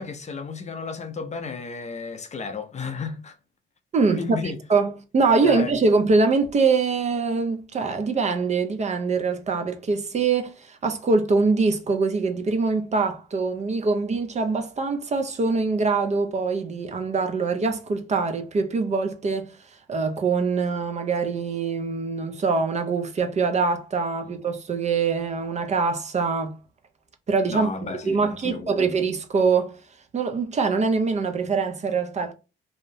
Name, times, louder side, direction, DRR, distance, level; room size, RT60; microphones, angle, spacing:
voice 1, 0.0-3.4 4.2-4.6 5.4-5.7 27.5-28.9, left 4 dB, 35° left, 0.5 m, -33 dB
voice 2, 3.9-19.5 19.9-26.6 27.3-29.7 30.1-32.3, right 4 dB, 35° right, 0.5 m, -23 dB
2.7 x 2.0 x 2.6 m
cardioid pair, 90°, 20 cm